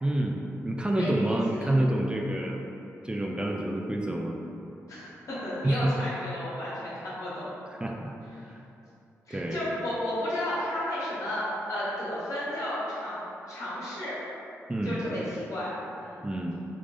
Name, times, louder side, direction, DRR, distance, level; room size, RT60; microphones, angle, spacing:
voice 1, 0.0-2.6 3.0-4.4 5.6-6.0 7.7-8.1 8.5-8.6 9.3-9.6 14.7-15.0 16.2-16.5, right 1 dB, 15° right, 0 dB, 0.3 m, -28 dB
voice 2, 0.9-1.3 1.6-1.7 4.9-6.9 7.2-7.5 9.3-13.2 13.4-14.2 14.8-16.3, left 1 dB, 65° left, -9 dB, 1.4 m, -33 dB
3.5 x 3.2 x 2.5 m, 2.8 s
cardioid pair, 60°, 6 cm